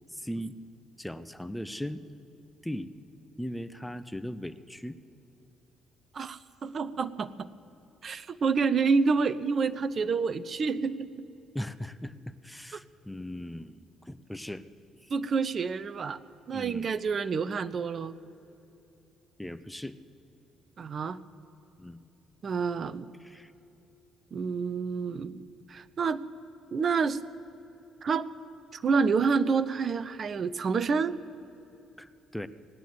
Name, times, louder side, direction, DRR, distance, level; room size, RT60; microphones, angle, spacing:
voice 1, 0.1-0.6 1.0-2.0 2.6-2.9 3.4-5.0 11.5-14.7 15.0-15.1 16.5-16.9 19.4-20.0 21.8-22.0 23.2-23.5 32.0-32.5, equal, 5° left, 12 dB, 0.7 m, -38 dB
voice 2, 6.1-7.5 8.0-11.3 15.1-16.2 16.5-18.1 20.8-21.2 22.4-23.1 24.3-25.4 25.7-26.2 26.7-27.2 28.0-28.3 28.7-31.1, right 5 dB, 45° right, 14 dB, 0.6 m, -28 dB
18.0 x 9.2 x 8.1 m, 2.9 s
figure-of-eight pair, 45°, 0 cm